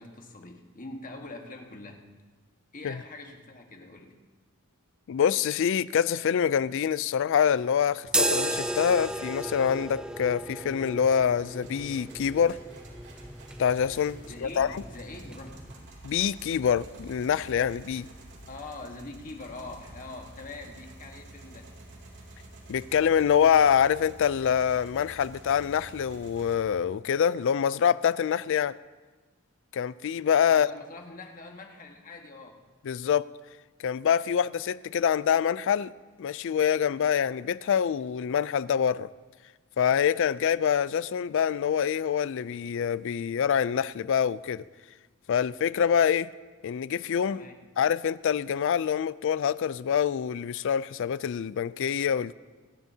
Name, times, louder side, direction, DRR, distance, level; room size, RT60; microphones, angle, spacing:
voice 1, 0.0-2.0 2.7-4.1 14.2-15.6 18.5-21.7 30.5-32.6 47.3-47.6, left 2 dB, 40° left, 1.5 m, -43 dB
voice 2, 5.1-12.6 13.6-14.8 16.0-18.1 22.7-28.8 29.7-30.7 32.9-33.3 33.8-35.9 36.2-39.1 39.8-44.6 45.3-46.3 46.6-47.5 47.8-52.3, left 8 dB, 60° left, 0.3 m, -25 dB
sound 1, 8.1-15.9, right 1 dB, 5° right, 0.5 m, -34 dB
sound 2, 11.2-26.6, right 1 dB, 55° right, 2.8 m, -49 dB
26.5 x 10.5 x 2.8 m
head